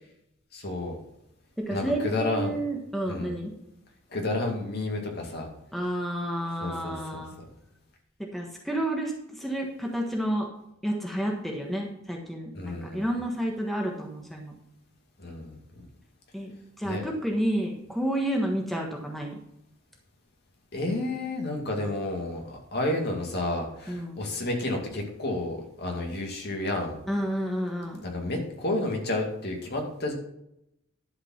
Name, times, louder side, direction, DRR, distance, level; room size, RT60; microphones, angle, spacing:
voice 1, 0.5-1.0 1.7-2.6 3.0-3.3 4.1-5.5 6.6-7.2 12.5-13.1 15.2-15.6 16.8-17.0 20.7-27.0 28.0-30.1, left 2 dB, 55° left, 1 dB, 2.3 m, -31 dB
voice 2, 1.7-3.5 5.7-7.4 8.2-10.5 10.8-14.5 16.3-16.5 16.8-19.4 23.9-24.2 27.1-28.0, right 1 dB, ahead, 0 dB, 1.3 m, -30 dB
11.5 x 5.1 x 5.8 m, 0.81 s
head